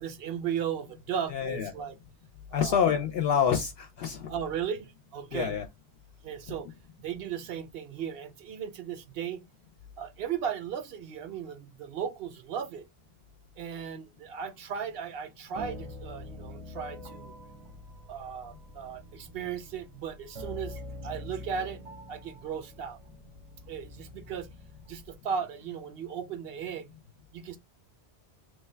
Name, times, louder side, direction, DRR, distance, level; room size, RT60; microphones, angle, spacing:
voice 1, 0.0-1.9 2.5-2.9 4.3-5.5 6.2-6.7 7.0-9.4 10.0-12.9 13.6-17.3 18.1-21.8 22.1-23.0 23.7-24.5 24.9-26.9 27.3-27.6, right 8 dB, 70° right, 0.7 m, -36 dB
voice 2, 1.3-1.7 2.5-4.3 5.3-5.6, left 8 dB, 70° left, 0.7 m, -27 dB
sound 1, 15.6-25.2, left 1 dB, 35° right, 0.6 m, -45 dB
3.1 x 2.2 x 3.2 m
omnidirectional pair, 1.1 m